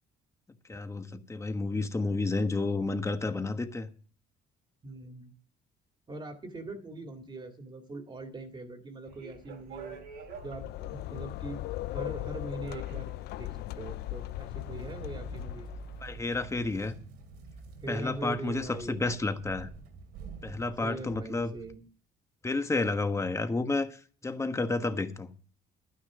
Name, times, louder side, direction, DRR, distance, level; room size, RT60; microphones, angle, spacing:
voice 1, 0.7-3.9 16.0-16.9 17.9-19.7 20.4-21.5 22.4-25.3, left 3 dB, 15° left, 1.3 m, -31 dB
voice 2, 4.8-5.3 6.1-10.0 10.4-11.7 11.9-13.1 13.4-15.7 17.8-19.3 20.5-21.9, right 2 dB, 25° right, 2.1 m, -41 dB
sound 1, 9.0-21.7, right 5 dB, 85° right, 2.6 m, -48 dB
sound 2, 10.1-16.2, left 16 dB, 75° left, 0.5 m, -38 dB
11.5 x 9.8 x 6.1 m
cardioid pair, 110°, 17 cm